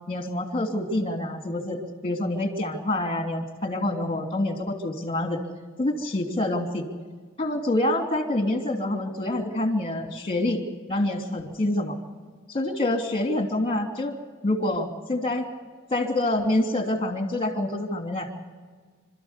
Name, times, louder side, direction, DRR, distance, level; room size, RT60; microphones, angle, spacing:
voice 1, 0.1-5.4 5.8-6.8 7.4-10.6 10.9-12.0 12.5-14.1 14.4-15.5 15.9-18.3, left 1 dB, 25° left, 4 dB, 2.9 m, -26 dB
28.0 x 13.5 x 8.2 m, 1.5 s
head